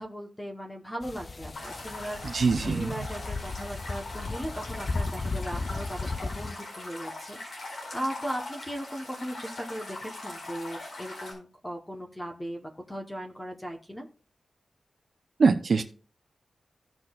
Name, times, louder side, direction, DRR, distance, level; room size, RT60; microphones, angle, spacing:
voice 1, 0.0-14.1, equal, 10° left, 2 dB, 0.9 m, -38 dB
sound 1, 1.0-6.5, left 3 dB, 35° left, 0.4 m, -35 dB
sound 2, 1.5-11.3, left 2 dB, 60° left, 4.6 m, -41 dB
voice 2, 2.2-2.9 15.4-15.8, right 4 dB, 60° right, 5 dB, 0.5 m, -23 dB
16.5 x 6.0 x 2.3 m, 0.41 s
wide cardioid pair, 150°, 0 cm